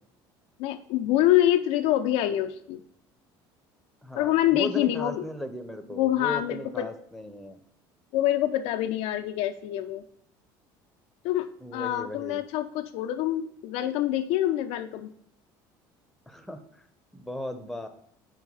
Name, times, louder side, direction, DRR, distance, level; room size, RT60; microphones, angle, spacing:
voice 1, 0.6-2.8 4.1-5.2 6.0-6.9 8.1-10.0 11.2-15.1, left 13 dB, 70° left, 7 dB, 0.5 m, -26 dB
voice 2, 4.0-7.6 11.6-12.4 16.3-16.8 17.1-17.9, left 1 dB, ahead, 8 dB, 0.8 m, -37 dB
4.8 x 4.6 x 5.4 m, 0.69 s
supercardioid pair, 85°, 11 cm